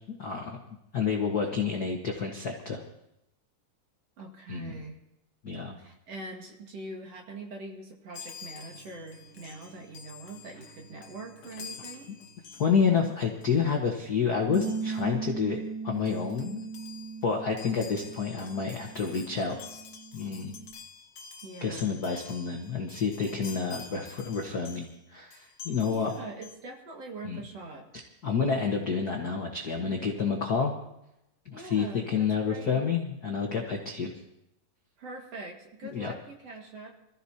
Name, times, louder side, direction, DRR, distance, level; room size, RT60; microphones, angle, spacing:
voice 1, 0.1-0.6 0.9-2.8 4.5-4.7 5.4-5.8 12.6-16.6 17.2-19.6 20.1-20.6 21.6-26.1 27.2-27.4 28.2-30.7 31.4-34.1 35.9-36.1, left 6 dB, 75° left, 1 dB, 0.8 m, -29 dB
voice 2, 4.2-5.0 5.8-12.1 21.4-22.0 25.9-27.9 31.5-32.9 35.0-36.9, right 2 dB, 50° right, 1 dB, 2.7 m, -43 dB
Chime, 8.1-13.1 13.4-13.6 14.5-15.1 15.7-15.8 16.0-25.0 25.3-26.6, left 6 dB, 60° left, 2.2 m, -48 dB
sound 1, 8.7-15.0, right 3 dB, 90° right, 4.2 m, -60 dB
Bass guitar, 14.5-20.7, right 5 dB, 10° right, 2.9 m, -38 dB
26.0 x 14.5 x 2.9 m, 0.84 s
omnidirectional pair, 3.9 m